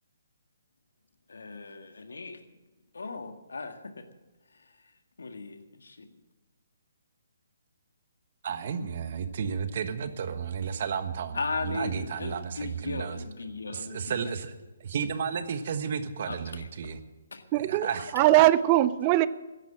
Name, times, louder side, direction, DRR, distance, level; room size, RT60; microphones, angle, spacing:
voice 1, 1.3-2.4 2.9-4.1 5.2-6.1 11.3-14.2 16.3-16.7 17.3-17.4 18.2-18.3, left 4 dB, 80° left, 1.8 m, -37 dB
voice 2, 8.4-13.2 13.7-14.5 14.8-17.0 17.6-18.1, right 7 dB, 50° right, 1.4 m, -33 dB
voice 3, 17.5-17.9 18.1-19.3, right 15 dB, 30° right, 0.5 m, -20 dB
15.0 x 10.5 x 7.5 m
hypercardioid pair, 145°, 0 cm